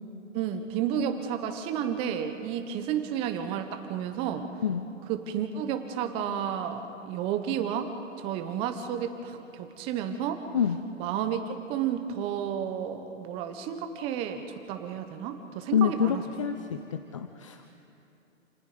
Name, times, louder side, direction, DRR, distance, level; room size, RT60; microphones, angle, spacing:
voice 1, 0.3-4.5 5.1-7.9 8.2-10.4 11.0-16.2, right 8 dB, 15° right, 8 dB, 0.8 m, -31 dB
voice 2, 10.5-10.9 15.7-17.7, left 8 dB, 25° left, 8 dB, 0.5 m, -27 dB
28.5 x 19.0 x 5.0 m, 2.9 s
figure-of-eight pair, 140°, 39 cm